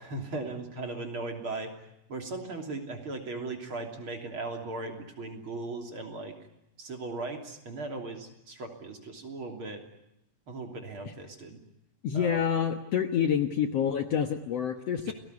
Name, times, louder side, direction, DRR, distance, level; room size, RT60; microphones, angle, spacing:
voice 1, 0.0-1.7 2.1-6.3 6.8-9.8 10.5-11.6 12.1-12.4 15.1-15.2, right 3 dB, 40° right, 3 dB, 3.7 m, -38 dB
voice 2, 12.0-15.1, left 8 dB, 60° left, 7 dB, 1.9 m, -27 dB
29.5 x 19.5 x 9.5 m, 0.87 s
omnidirectional pair, 3.8 m